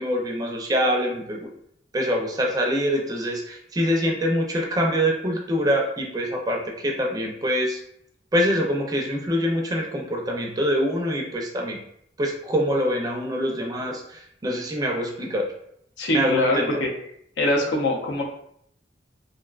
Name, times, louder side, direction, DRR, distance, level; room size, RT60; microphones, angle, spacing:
voice 1, 0.0-1.5 1.9-7.8 8.3-11.8 12.2-15.5 16.1-16.8, equal, 20° right, 0 dB, 0.4 m, -25 dB
voice 2, 16.0-16.9 17.4-18.2, left 1 dB, 90° left, -1 dB, 0.6 m, -23 dB
2.5 x 2.1 x 2.3 m, 0.70 s
head